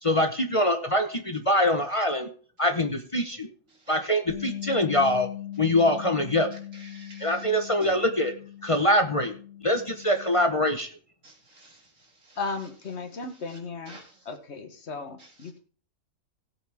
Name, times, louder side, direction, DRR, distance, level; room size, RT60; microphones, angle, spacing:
voice 1, 0.0-2.3 2.6-3.5 3.9-5.3 5.6-6.5 7.2-8.3 8.6-9.3 9.6-10.9, left 1 dB, 25° left, 6 dB, 1.0 m, -24 dB
Bass guitar, 4.3-10.5, left 11 dB, 75° left, 3.4 m, -40 dB
voice 2, 6.8-7.4 7.8-7.9 11.2-11.8 12.2-12.4 13.5-13.6 13.9-14.2 15.2-15.3, right 2 dB, 75° right, 1 dB, 3.2 m, -49 dB
voice 3, 12.4-14.0 14.2-15.6, left 4 dB, 55° left, 8 dB, 1.5 m, -35 dB
16.5 x 8.3 x 3.5 m, 0.42 s
omnidirectional pair, 1.4 m